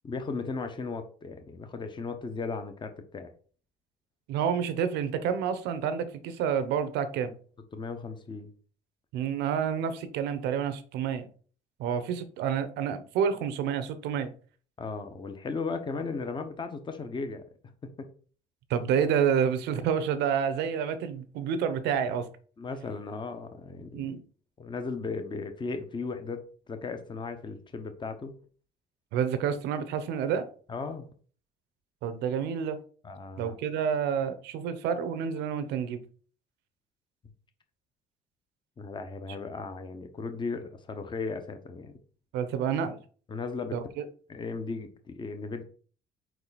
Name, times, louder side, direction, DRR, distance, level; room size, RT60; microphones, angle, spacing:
voice 1, 0.0-3.3 7.7-8.5 14.8-17.4 22.6-24.1 24.6-26.4 26.7-28.3 30.7-31.1 33.0-33.5 38.8-42.0 43.3-43.8 44.3-45.6, left 4 dB, 30° left, 7 dB, 0.9 m, -36 dB
voice 2, 4.3-7.3 9.1-11.3 11.8-14.3 18.7-22.3 23.9-24.2 29.1-30.4 32.0-32.8 33.4-36.0 42.3-43.0 43.7-44.0, right 7 dB, 90° right, 11 dB, 0.8 m, -29 dB
4.9 x 4.7 x 4.1 m, 0.43 s
cardioid pair, 110°, 17 cm